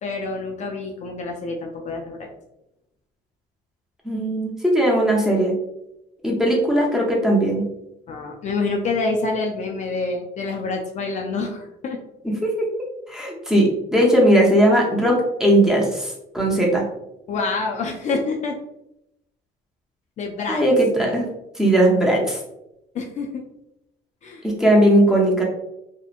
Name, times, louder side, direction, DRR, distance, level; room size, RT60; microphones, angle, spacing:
voice 1, 0.0-2.3 8.1-12.0 17.3-18.6 20.2-20.6 22.9-23.4 24.2-24.5, left 3 dB, 45° left, 1 dB, 0.4 m, -27 dB
voice 2, 4.0-5.5 6.2-7.6 12.2-12.7 13.1-16.8 20.5-21.3 21.6-22.4 24.4-25.4, right 1 dB, 5° right, -2 dB, 0.6 m, -18 dB
2.8 x 2.1 x 2.4 m, 0.86 s
cardioid pair, 110°, 17 cm